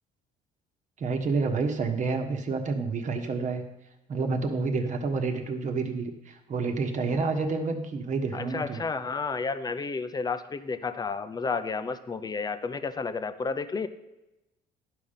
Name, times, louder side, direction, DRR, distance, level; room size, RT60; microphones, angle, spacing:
voice 1, 1.0-3.6 4.1-8.8, right 4 dB, 45° right, 4 dB, 1.3 m, -29 dB
voice 2, 8.3-13.9, left 4 dB, 25° left, 10 dB, 0.6 m, -31 dB
11.0 x 5.2 x 5.7 m, 0.95 s
cardioid pair, 110°, 17 cm